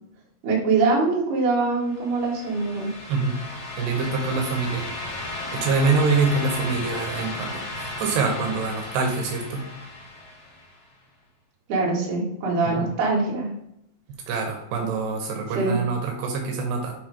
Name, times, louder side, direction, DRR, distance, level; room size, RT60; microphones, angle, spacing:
voice 1, 0.4-2.9 11.7-13.5 15.5-15.8, right 3 dB, 60° right, -3 dB, 2.4 m, -23 dB
sound 1, 1.8-10.7, left 2 dB, 70° left, 2.1 m, -35 dB
voice 2, 3.8-4.9 5.5-9.7 12.8-12.9 14.3-16.9, right 4 dB, 90° right, 2 dB, 2.3 m, -25 dB
7.9 x 3.1 x 4.9 m, 0.79 s
omnidirectional pair, 5.9 m